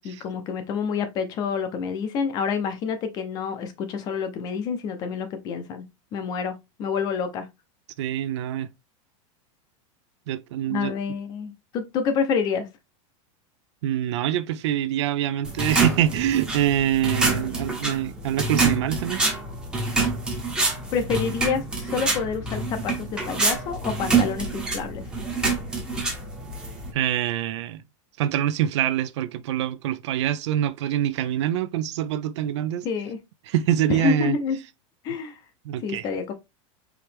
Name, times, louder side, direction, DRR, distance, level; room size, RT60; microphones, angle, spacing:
voice 1, 0.0-5.8 6.1-7.5 10.7-12.7 20.9-25.0 32.8-33.2 33.9-34.6 35.0-35.4 35.8-36.3, left 6 dB, 25° left, 0.6 m, -28 dB
voice 2, 8.0-8.7 10.3-10.9 13.8-19.2 26.9-27.8 28.2-32.9 33.5-34.4 35.7-36.1, right 11 dB, 60° right, 0.4 m, -25 dB
sound 1, 15.4-26.9, right 3 dB, 5° right, 0.8 m, -26 dB
4.8 x 3.0 x 3.3 m
supercardioid pair, 180°, 17 cm